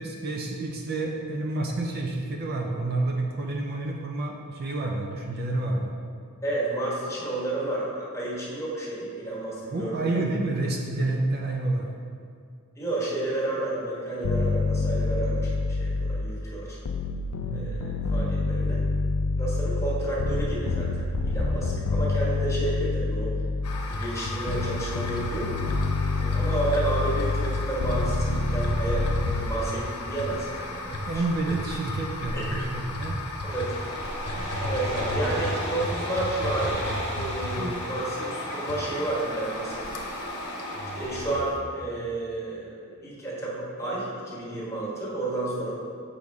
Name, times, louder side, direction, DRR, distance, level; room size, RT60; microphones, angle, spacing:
voice 1, 0.0-5.9 9.7-11.9 17.4-17.8 30.9-33.2, right 2 dB, 45° right, 1 dB, 0.5 m, -29 dB
voice 2, 6.4-10.1 12.8-15.5 15.8-16.8 17.5-18.8 19.4-23.3 23.8-25.5 26.1-30.9 32.3-32.7 33.4-33.8 34.6-40.0 40.9-45.8, right 2 dB, 15° left, -6 dB, 1.4 m, -31 dB
sound 1, 14.2-16.4 16.9-24.0 24.5-29.5, left 3 dB, 70° left, 0.4 m, -27 dB
sound 2, 23.6-41.6, left 2 dB, 90° left, 0.8 m, -34 dB
sound 3, 33.5-41.3, right 1 dB, 80° right, 1.6 m, -36 dB
6.4 x 5.4 x 3.5 m, 2.3 s
head